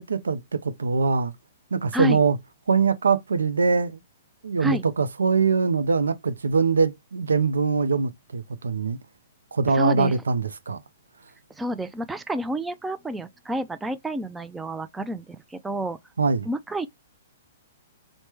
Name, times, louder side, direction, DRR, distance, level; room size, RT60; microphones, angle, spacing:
voice 1, 0.0-1.3 1.7-2.4 2.7-4.0 4.4-9.0 9.5-10.8 16.2-16.5, right 5 dB, 85° right, 0.4 m, -23 dB
voice 2, 9.7-10.2 11.6-16.0 16.5-16.9, right 1 dB, 10° right, 0.3 m, -29 dB
3.2 x 2.0 x 3.0 m
hypercardioid pair, 125°, 0 cm